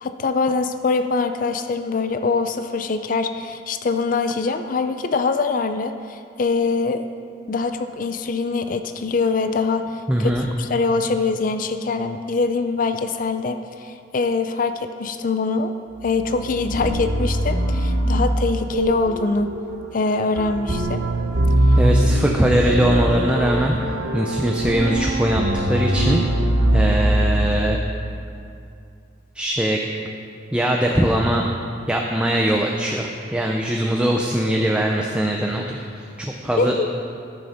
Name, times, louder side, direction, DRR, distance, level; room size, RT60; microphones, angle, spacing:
voice 1, 0.0-7.0 7.5-10.3 10.6-15.7 16.0-19.5 19.9-21.0 36.6-36.9, left 4 dB, 45° left, 9 dB, 0.4 m, -23 dB
voice 2, 10.1-10.5 21.8-23.8 24.1-25.4 25.7-26.2 26.7-27.8 29.3-29.8 30.5-31.4 31.9-36.7, equal, 5° right, 0 dB, 0.5 m, -21 dB
sound 1, 16.0-28.0, right 1 dB, 75° right, 1.0 m, -22 dB
13.0 x 6.8 x 5.1 m, 2.5 s
head